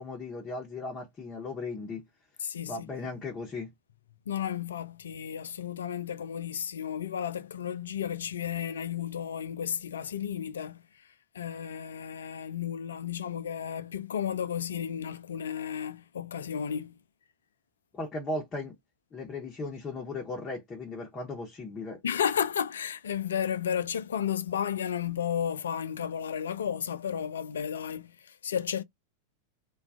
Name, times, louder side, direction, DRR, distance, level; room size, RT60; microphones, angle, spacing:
voice 1, 0.0-2.0 2.7-3.7 17.9-18.7 19.1-22.0, left 3 dB, 20° left, 0.8 m, -37 dB
voice 2, 2.4-2.9 4.3-10.8 11.3-16.9 22.0-28.8, left 8 dB, 65° left, 0.3 m, -33 dB
2.3 x 2.3 x 3.5 m
figure-of-eight pair, 90°, 0 cm